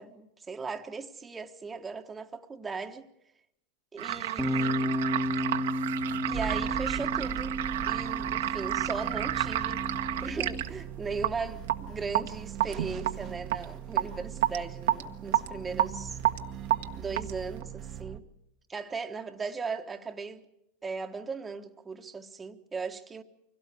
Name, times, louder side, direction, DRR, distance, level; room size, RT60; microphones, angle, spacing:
voice 1, 0.0-3.1 3.9-5.0 6.2-7.6 7.8-9.9 10.2-16.2 17.0-18.2 18.7-20.4 20.8-23.2, right 4 dB, 20° right, 1.3 m, -38 dB
sound 1, 4.0-17.6, right 13 dB, 75° right, 1.3 m, -31 dB
Bass guitar, 4.4-10.6, left 1 dB, 5° left, 1.5 m, -33 dB
sound 2, 6.3-18.2, right 10 dB, 40° right, 1.1 m, -41 dB
24.5 x 17.0 x 8.3 m
hypercardioid pair, 100°, 0 cm